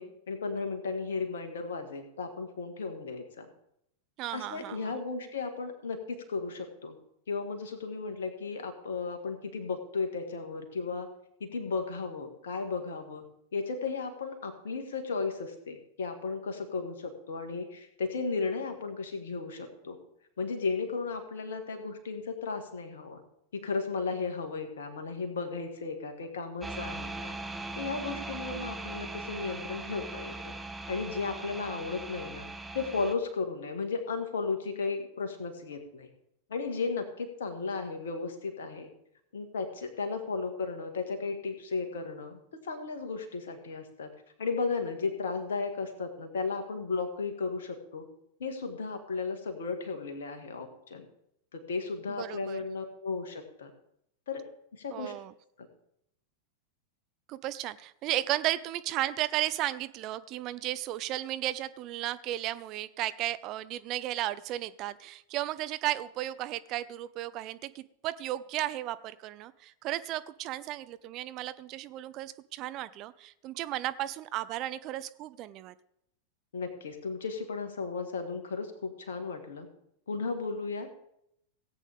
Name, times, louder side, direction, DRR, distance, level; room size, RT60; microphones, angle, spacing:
voice 1, 0.0-3.5 4.3-7.0 7.3-11.1 11.4-13.2 13.5-20.0 20.4-23.2 23.5-27.4 27.8-30.5 30.9-32.5 32.7-36.1 36.5-38.9 39.3-44.1 44.4-48.1 48.4-51.1 51.5-53.7 54.3-54.4 54.7-55.1 76.5-79.7 80.1-80.9, left 4 dB, 60° left, 5 dB, 1.9 m, -35 dB
voice 2, 4.2-5.0 52.2-52.6 54.9-55.3 57.3-75.7, right 14 dB, 40° right, 15 dB, 0.5 m, -34 dB
sound 1, 26.6-33.1, right 2 dB, 5° right, 0.9 m, -40 dB
17.5 x 8.4 x 3.6 m, 0.76 s
figure-of-eight pair, 90°, 0 cm